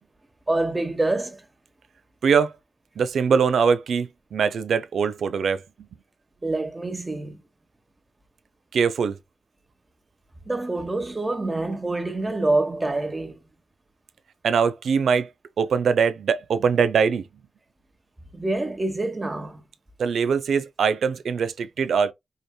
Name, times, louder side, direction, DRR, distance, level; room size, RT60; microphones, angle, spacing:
voice 1, 0.5-1.4 6.4-7.4 10.5-13.4 18.3-19.6, right 2 dB, 30° right, 1.1 m, -26 dB
voice 2, 3.0-5.6 8.7-9.2 14.4-15.3 15.6-17.2 20.0-22.1, right 6 dB, 80° right, 0.5 m, -22 dB
4.9 x 2.7 x 2.2 m
cardioid pair, 50°, 0 cm